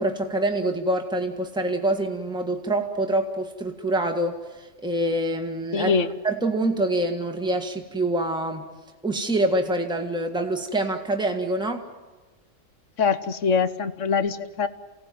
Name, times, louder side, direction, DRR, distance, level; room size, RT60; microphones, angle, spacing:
voice 1, 0.0-5.9 6.2-8.7 9.0-11.9, right 1 dB, 5° right, 5 dB, 1.7 m, -25 dB
voice 2, 5.7-6.1 13.0-14.7, left 5 dB, 65° left, 13 dB, 1.3 m, -23 dB
28.0 x 17.5 x 9.3 m, 1.2 s
omnidirectional pair, 1.4 m